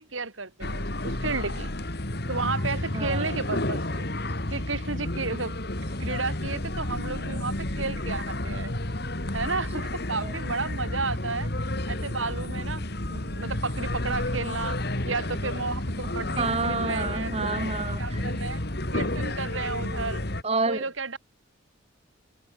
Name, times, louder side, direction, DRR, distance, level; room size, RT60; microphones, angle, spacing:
voice 1, 0.0-1.7 2.3-4.0 4.5-5.6 6.0-8.8 9.3-11.5 11.9-12.8 13.1-14.8 15.0-17.3 18.0-18.6 18.9-20.2 20.7-21.2, right 4 dB, 80° right, 3.6 m, -32 dB
sound 1, 0.6-20.4, left 1 dB, 55° left, 2.7 m, -31 dB
voice 2, 2.9-3.3 10.2-10.3 16.4-18.4 20.4-20.9, right 3 dB, 30° right, 1.7 m, -29 dB
head